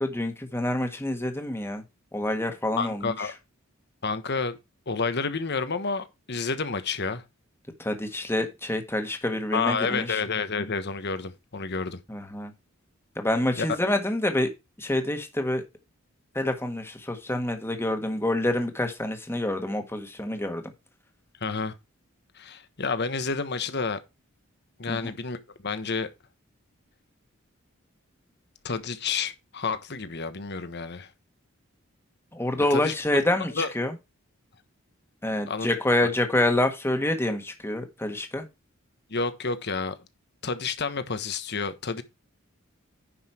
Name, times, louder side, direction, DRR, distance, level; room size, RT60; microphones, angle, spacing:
voice 1, 0.0-1.8 2.1-3.3 7.8-10.2 12.1-12.5 13.2-14.5 14.8-15.6 16.3-20.6 24.9-25.0 32.3-33.9 35.2-38.5, left 1 dB, 10° left, 1.6 m, -27 dB
voice 2, 2.8-3.4 4.0-4.6 4.9-7.2 9.5-12.0 13.6-13.7 21.4-21.7 22.3-24.0 24.8-26.1 28.6-31.1 32.7-32.9 33.6-33.7 35.5-35.7 36.0-36.1 39.1-40.0 40.4-42.0, left 4 dB, 55° left, 1.2 m, -30 dB
10.0 x 5.6 x 4.5 m
head